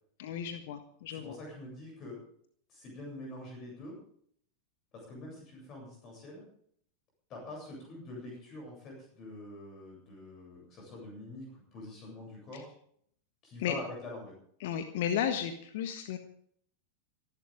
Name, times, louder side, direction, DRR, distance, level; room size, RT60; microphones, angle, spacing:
voice 1, 0.2-1.4 13.6-13.7 14.6-16.2, left 9 dB, 50° left, 8 dB, 1.5 m, -34 dB
voice 2, 1.1-2.2 2.7-4.0 4.9-6.4 7.3-12.7 13.4-14.3, left 2 dB, 35° left, -1 dB, 8.0 m, -45 dB
25.5 x 12.0 x 3.8 m, 0.64 s
figure-of-eight pair, 90°, 0 cm